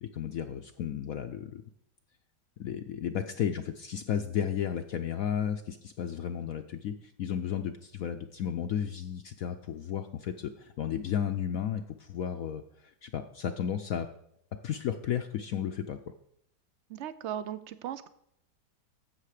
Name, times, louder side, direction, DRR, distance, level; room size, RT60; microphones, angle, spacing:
voice 1, 0.0-1.6 2.6-12.6 13.0-14.1 14.6-16.0, left 8 dB, 65° left, 6 dB, 0.9 m, -33 dB
voice 2, 16.9-18.1, right 10 dB, 65° right, 14 dB, 0.7 m, -37 dB
12.5 x 8.0 x 4.9 m, 0.74 s
omnidirectional pair, 1.9 m